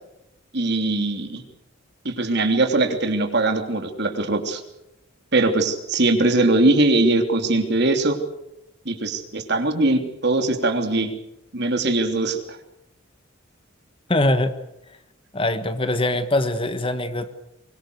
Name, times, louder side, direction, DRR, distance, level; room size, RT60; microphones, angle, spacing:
voice 1, 0.5-1.4 2.0-4.6 5.3-8.2 8.8-11.1 11.5-12.6, right 2 dB, 55° right, 6 dB, 3.2 m, -21 dB
voice 2, 14.1-14.5 15.3-17.3, left 1 dB, 25° left, 10 dB, 1.5 m, -22 dB
24.0 x 23.0 x 8.0 m, 0.84 s
head